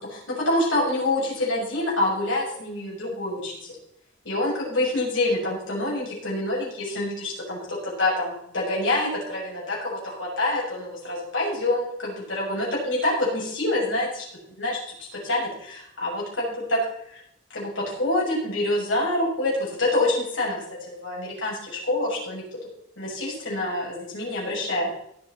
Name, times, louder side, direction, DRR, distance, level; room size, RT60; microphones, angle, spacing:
voice 1, 0.3-3.6 4.2-14.2 14.6-14.8 15.1-16.8 17.1-17.2 17.5-20.6 20.9-22.4 23.0-24.9, left 1 dB, 85° left, -3 dB, 6.5 m, -26 dB
18.0 x 8.3 x 4.1 m, 0.72 s
head